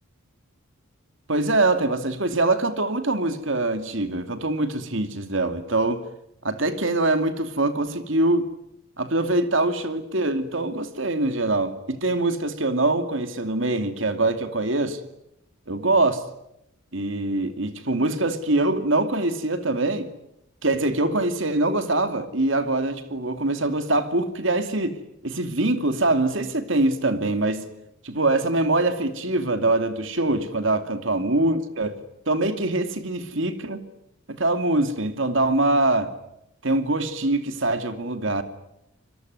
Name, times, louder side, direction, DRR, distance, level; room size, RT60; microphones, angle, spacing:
voice 1, 1.3-6.0 6.4-8.5 9.0-15.0 15.7-16.3 16.9-20.1 20.6-27.7 28.0-32.0 32.3-33.9 34.3-36.1 36.6-38.4, right 2 dB, 60° right, 2.6 m, -23 dB
26.0 x 22.5 x 9.5 m
head